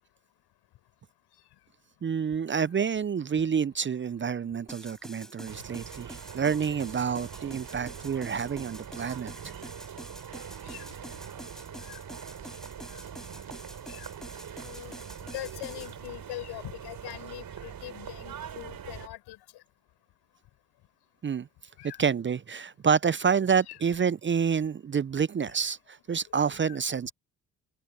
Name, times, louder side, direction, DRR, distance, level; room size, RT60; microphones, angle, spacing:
voice 1, 2.0-9.5 21.2-21.5 22.0-27.1, right 6 dB, 30° right, 0.6 m, -28 dB
sound 1, 4.7-15.9, equal, ahead, 6.0 m, -47 dB
sound 2, 5.4-19.1, right 8 dB, 55° right, 3.8 m, -43 dB
voice 2, 14.6-19.4 21.8-22.0 23.6-23.8 26.6-26.8, left 16 dB, 75° left, 6.3 m, -42 dB
hypercardioid pair, 45°, 39 cm